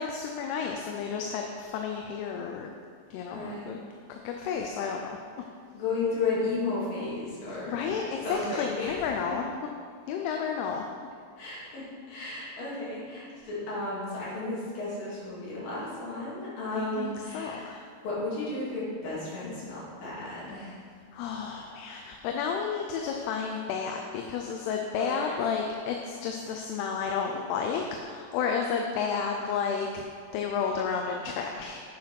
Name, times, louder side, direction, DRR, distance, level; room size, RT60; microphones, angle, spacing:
voice 1, 0.0-2.7 3.1-3.8 4.1-5.2 7.7-9.4 10.1-10.9 16.7-17.8 21.1-30.0 30.3-31.8, left 6 dB, 85° left, 2 dB, 2.6 m, -31 dB
voice 2, 3.3-3.8 5.7-7.9 8.2-9.1 11.4-20.8 25.0-25.3, left 3 dB, 60° left, -8 dB, 4.3 m, -33 dB
8.7 x 5.9 x 5.8 m, 2.1 s
omnidirectional pair, 4.6 m